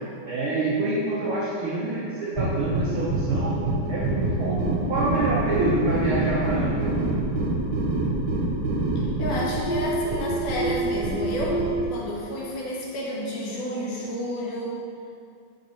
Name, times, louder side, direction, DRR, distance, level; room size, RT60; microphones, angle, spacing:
voice 1, 0.3-3.6 3.9-7.0, right 2 dB, 90° right, -6 dB, 1.1 m, -26 dB
sound 1, 2.3-11.8, right 2 dB, 70° right, 1.8 m, -26 dB
voice 2, 9.0-14.8, equal, 80° left, -4 dB, 2.8 m, -31 dB
8.0 x 6.9 x 3.1 m, 2.5 s
omnidirectional pair, 3.7 m